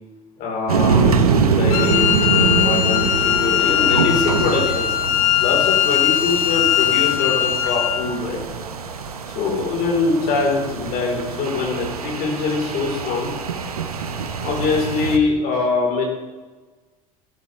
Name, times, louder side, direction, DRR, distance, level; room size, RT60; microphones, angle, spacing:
voice 1, 0.4-4.9 5.4-8.6 9.4-13.3 14.4-16.1, left 4 dB, 55° left, -1 dB, 5.2 m, -23 dB
sound 1, 0.7-15.2, right 5 dB, 90° right, 1.2 m, -24 dB
Wind instrument woodwind instrument, 1.7-8.0, left 12 dB, 70° left, 1.4 m, -20 dB
16.0 x 12.0 x 3.8 m, 1.3 s
hypercardioid pair, 75°, 19 cm